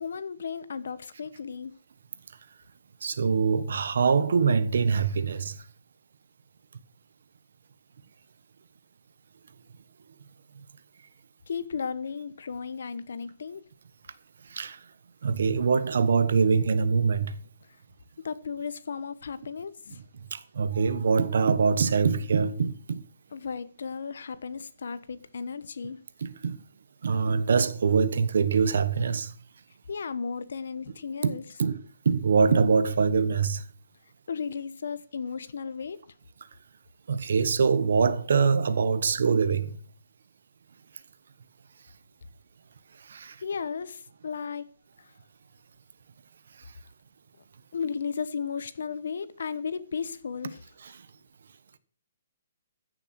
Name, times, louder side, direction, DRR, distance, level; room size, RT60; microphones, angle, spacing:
voice 1, 0.0-1.7 11.5-13.6 18.2-20.0 23.3-26.0 29.9-31.4 34.3-36.0 43.4-44.7 45.0-45.1 47.7-50.6, left 6 dB, 65° left, 1.0 m, -35 dB
voice 2, 3.0-5.6 10.5-10.6 14.4-14.8 15.2-17.4 20.3-23.0 26.2-26.6 27.0-29.3 31.2-33.6 37.1-39.8 43.0-43.4 50.8-50.9, right 5 dB, 60° right, 1.2 m, -24 dB
15.0 x 6.7 x 6.2 m
hypercardioid pair, 180°, 0 cm